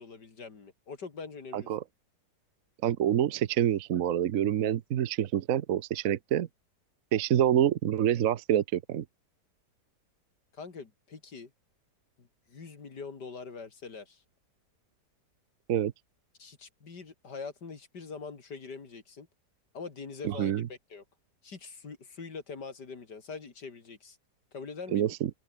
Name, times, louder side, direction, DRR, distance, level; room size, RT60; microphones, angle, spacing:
voice 1, 0.0-1.7 10.5-11.5 12.2-14.2 16.4-19.3 19.7-21.0 21.4-24.2 24.5-25.1, left 4 dB, 80° left, 3.4 m, -43 dB
voice 2, 1.5-1.8 2.8-6.5 7.1-9.0 15.7-15.9 20.2-20.6 24.9-25.3, right 10 dB, 60° right, 1.1 m, -27 dB
open air
omnidirectional pair, 1.8 m